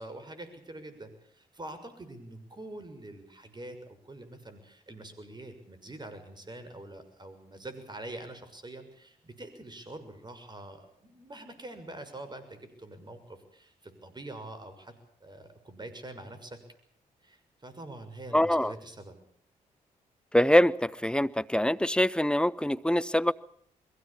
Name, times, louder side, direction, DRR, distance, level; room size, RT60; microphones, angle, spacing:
voice 1, 0.0-14.9 15.2-16.6 17.2-19.1, right 2 dB, 30° right, 9 dB, 6.5 m, -45 dB
voice 2, 18.3-18.7 20.3-23.3, left 1 dB, 5° left, 17 dB, 1.0 m, -24 dB
22.5 x 17.0 x 8.7 m, 0.63 s
supercardioid pair, 55°, 15 cm